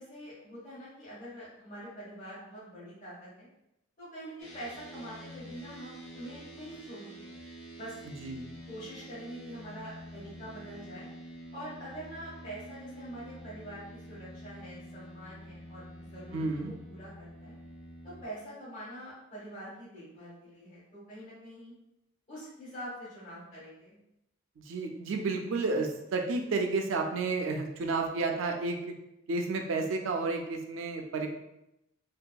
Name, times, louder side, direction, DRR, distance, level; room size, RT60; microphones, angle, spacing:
voice 1, 0.0-3.5 4.0-7.3 7.7-8.0 8.7-11.1 11.5-17.6 18.0-21.7 22.3-24.0, equal, 40° left, -10 dB, 1.1 m, -45 dB
sound 1, 4.4-18.2, right 1 dB, 80° left, 0.8 m, -48 dB
voice 2, 16.3-16.7 24.6-29.0 29.3-31.3, right 3 dB, 75° right, 4 dB, 0.4 m, -31 dB
2.6 x 2.2 x 2.2 m, 0.86 s
head